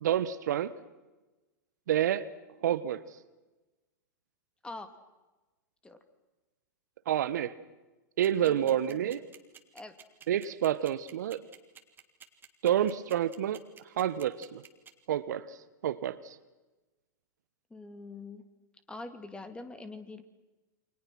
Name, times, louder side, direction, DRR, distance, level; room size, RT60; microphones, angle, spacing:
voice 1, 0.0-0.7 1.9-2.3 2.6-3.0 7.1-7.6 8.2-9.2 10.3-11.4 12.6-13.6 14.0-14.6 15.1-15.6 15.8-16.4, right 10 dB, 65° right, 1.3 m, -28 dB
sound 1, 8.2-14.9, right 7 dB, 20° right, 3.1 m, -50 dB
voice 2, 8.4-8.8 9.7-9.9 17.7-18.4 18.9-20.2, left 2 dB, 10° left, 2.7 m, -43 dB
29.5 x 26.0 x 6.3 m
hypercardioid pair, 105°, 10 cm